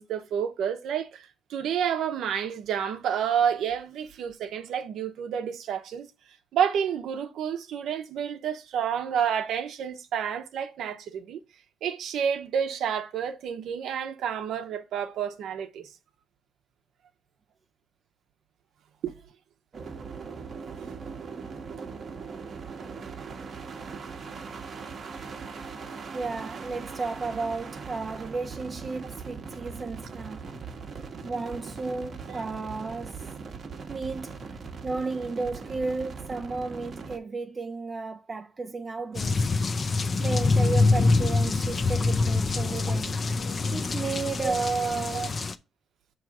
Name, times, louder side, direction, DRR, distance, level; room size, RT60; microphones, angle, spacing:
voice 1, 0.0-6.1 6.5-11.4 11.8-15.9 19.0-19.1 20.8-20.9 23.9-24.0 32.3-32.4 44.4-44.5 45.1-45.3, right 8 dB, 75° right, 0.9 m, -29 dB
sound 1, 19.7-37.2, right 5 dB, 45° right, 1.0 m, -40 dB
voice 2, 26.1-30.4 31.2-33.3 33.9-34.4 34.8-39.5 40.2-43.2 43.7-45.3, right 4 dB, 30° right, 0.5 m, -33 dB
sound 2, 39.1-45.5, left 3 dB, 35° left, 0.5 m, -25 dB
6.4 x 3.2 x 4.7 m
cardioid pair, 105°, 0 cm